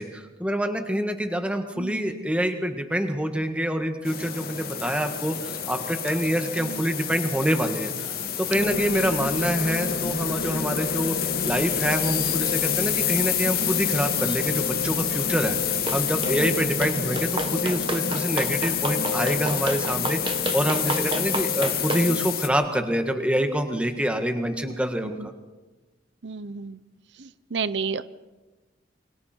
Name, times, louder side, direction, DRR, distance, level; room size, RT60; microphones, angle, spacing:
voice 1, 0.0-25.3, equal, 5° right, 6 dB, 1.8 m, -26 dB
voice 2, 1.8-2.1 6.6-6.8 16.2-16.6 21.9-22.3 24.6-24.7 25.0-25.3 26.2-26.8 27.1-28.0, right 5 dB, 75° right, 15 dB, 0.7 m, -33 dB
sound 1, 4.0-22.5, left 10 dB, 55° left, 2.5 m, -28 dB
sound 2, 8.5-22.3, left 2 dB, 75° left, 1.7 m, -32 dB
sound 3, 15.9-16.4 16.8-22.1, right 2 dB, 25° right, 1.4 m, -31 dB
28.5 x 25.0 x 4.5 m, 1.2 s
head